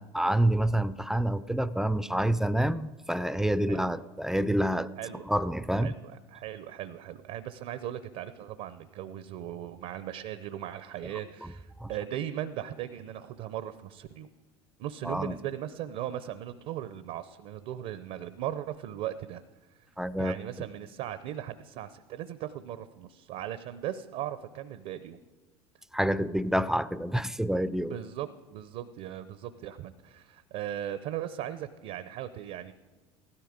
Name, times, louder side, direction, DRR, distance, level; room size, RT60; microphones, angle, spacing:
voice 1, 0.0-4.9 5.2-5.9 11.4-11.5 11.8-11.9 15.0-15.4 20.0-20.4 25.9-28.0, right 1 dB, 5° right, 16 dB, 0.4 m, -28 dB
voice 2, 5.8-14.3 14.8-19.4 19.7-19.9 20.2-25.2 27.8-32.7, right 11 dB, 60° right, 12 dB, 0.7 m, -38 dB
16.0 x 12.5 x 5.1 m, 1.2 s
hypercardioid pair, 80°, 15 cm